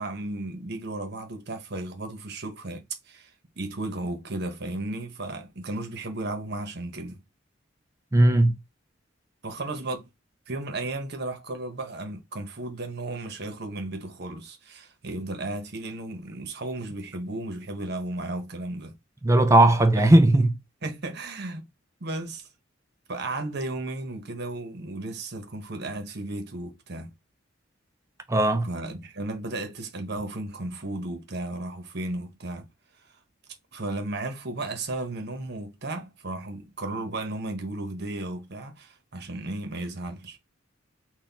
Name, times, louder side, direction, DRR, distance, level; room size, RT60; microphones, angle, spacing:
voice 1, 0.0-3.3 3.6-7.2 9.4-10.1 10.5-18.9 20.0-20.1 20.8-21.7 22.0-22.5 23.1-27.1 28.6-32.7 33.7-40.4, right 2 dB, 55° right, 1.1 m, -34 dB
voice 2, 8.1-8.5 19.2-20.5 28.3-28.7, right 1 dB, 15° right, 0.4 m, -17 dB
4.2 x 2.5 x 3.5 m
head